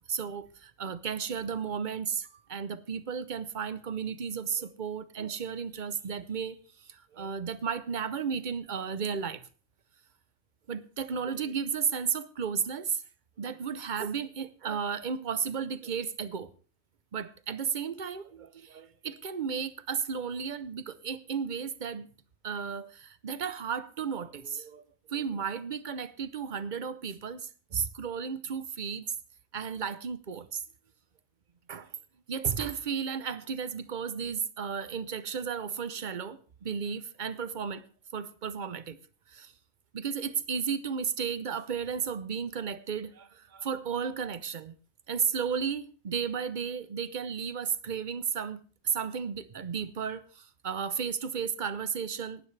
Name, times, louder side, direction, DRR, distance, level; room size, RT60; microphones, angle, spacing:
voice 1, 0.1-6.6 6.9-9.4 10.7-13.0 13.4-16.5 17.1-22.1 22.4-24.8 25.1-29.1 29.5-30.6 31.7-31.9 32.3-37.9 38.1-39.0 39.3-39.5 39.9-44.7 45.1-52.4, right 6 dB, 40° right, 0.8 m, -34 dB
18.0 x 12.5 x 3.3 m
omnidirectional pair, 1.4 m